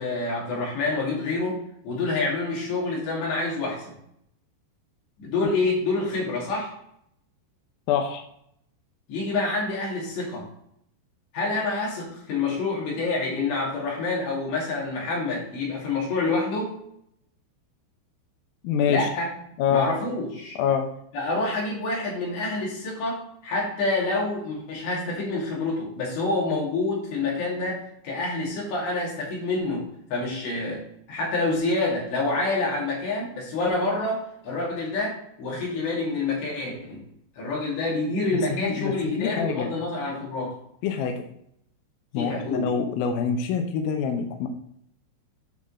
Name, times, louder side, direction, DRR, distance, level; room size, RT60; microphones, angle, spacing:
voice 1, 0.0-1.6 1.8-3.9 5.2-6.7 9.1-10.5 11.3-16.8 18.9-19.3 19.7-20.6 21.1-37.0 37.4-40.5 42.2-42.7, left 3 dB, 70° left, -4 dB, 4.6 m, -27 dB
voice 2, 7.9-8.2 18.6-19.1 19.6-19.9 20.6-20.9 38.6-38.9 39.2-39.7 40.8-41.2 42.1-44.5, left 7 dB, 85° left, 5 dB, 2.1 m, -25 dB
9.7 x 4.0 x 6.2 m, 0.72 s
omnidirectional pair, 5.4 m